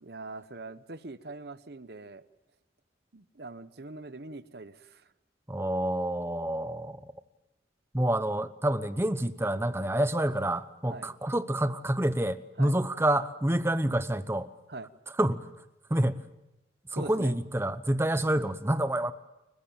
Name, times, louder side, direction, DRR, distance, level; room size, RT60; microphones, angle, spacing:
voice 1, 0.0-2.2 3.1-5.1 10.9-11.1 12.6-12.7 14.7-14.9 16.9-17.3, right 2 dB, 55° right, 1.0 m, -42 dB
voice 2, 5.5-7.1 7.9-14.5 15.2-15.5 15.9-16.2 16.9-19.1, right 1 dB, 15° right, 0.9 m, -28 dB
29.5 x 15.0 x 8.8 m
head